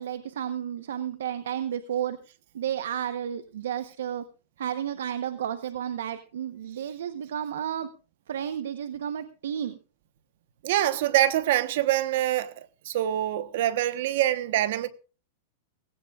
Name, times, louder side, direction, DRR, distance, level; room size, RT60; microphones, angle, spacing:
voice 1, 0.0-2.2 2.5-4.2 4.6-7.9 8.3-9.8, right 9 dB, 85° right, 1.1 m, -32 dB
voice 2, 10.6-14.9, right 13 dB, 60° right, 1.2 m, -25 dB
19.5 x 17.0 x 2.5 m
supercardioid pair, 155°, 0 cm